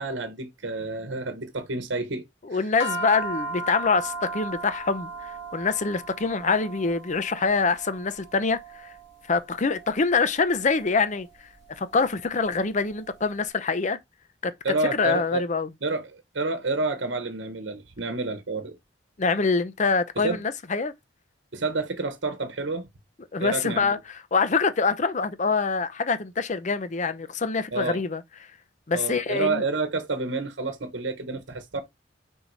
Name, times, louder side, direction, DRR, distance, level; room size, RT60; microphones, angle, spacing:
voice 1, 0.0-2.2 2.5-2.6 14.6-15.5 15.8-18.8 20.2-20.4 21.5-22.9 23.4-23.9 27.7-28.0 28.9-31.8, right 3 dB, 75° right, 1.1 m, -29 dB
voice 2, 2.5-8.9 9.3-11.3 11.8-14.0 14.4-14.5 15.0-15.7 19.2-20.9 23.3-24.0 24.3-28.2 28.9-29.6, left 4 dB, 40° left, 0.6 m, -25 dB
sound 1, 2.8-13.3, right 1 dB, 70° left, 2.0 m, -37 dB
5.4 x 4.6 x 4.0 m
head